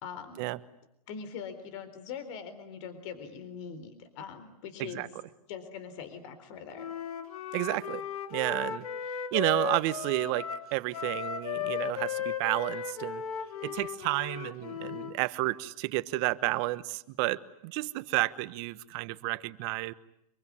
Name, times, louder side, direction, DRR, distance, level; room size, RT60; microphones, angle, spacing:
voice 1, 0.0-0.5 1.1-5.2 5.5-6.9, left 7 dB, 50° left, 10 dB, 4.1 m, -42 dB
Wind instrument woodwind instrument, 6.7-15.2, left 7 dB, 70° left, 2.7 m, -36 dB
voice 2, 7.5-8.0 8.3-8.9 9.3-13.2 13.6-19.9, right 20 dB, 45° right, 15 dB, 1.2 m, -31 dB
25.5 x 24.0 x 9.8 m, 0.79 s
hypercardioid pair, 115°, 19 cm